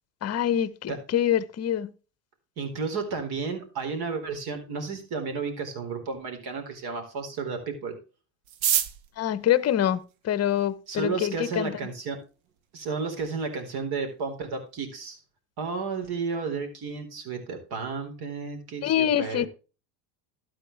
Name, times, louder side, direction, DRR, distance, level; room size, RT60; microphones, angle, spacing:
voice 1, 0.2-1.9 9.2-10.0 10.2-11.8 18.8-19.5, left 10 dB, 30° left, 1.0 m, -25 dB
voice 2, 2.6-8.0 10.9-12.2 12.7-15.2 15.6-19.5, right 4 dB, 50° right, 4.2 m, -32 dB
sound 1, 8.4-10.7 11.5-11.6 11.8-11.9 12.2-12.7 13.0-13.1 13.3-13.7 14.0-14.2 14.5-14.8, right 10 dB, 75° right, 1.5 m, -29 dB
12.5 x 9.0 x 3.3 m
supercardioid pair, 115°, 50 cm